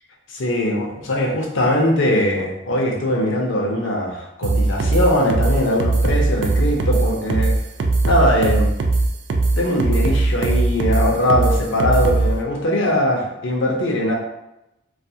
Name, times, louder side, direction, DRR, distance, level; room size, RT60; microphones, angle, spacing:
voice 1, 0.3-7.5 8.0-8.7 9.6-14.1, left 1 dB, 75° left, -1 dB, 0.6 m, -20 dB
sound 1, 4.4-12.3, right 2 dB, 65° right, 0.3 m, -19 dB
2.7 x 2.4 x 2.3 m, 0.89 s
head